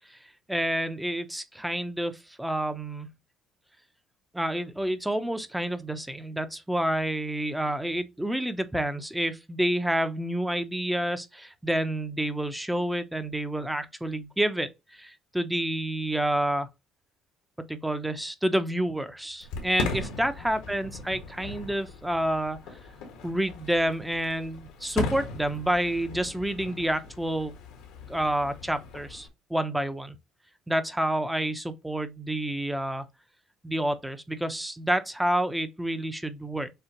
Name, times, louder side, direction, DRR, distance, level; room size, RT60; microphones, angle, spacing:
voice 1, 0.5-2.1 2.4-3.1 4.3-16.7 17.7-22.6 23.2-27.6 28.1-30.2 30.7-33.0 33.6-36.7, right 1 dB, 5° right, 0.8 m, -29 dB
Fireworks, 19.4-29.3, left 3 dB, 85° left, 1.5 m, -38 dB
6.7 x 2.4 x 3.0 m
supercardioid pair, 80°, 0 cm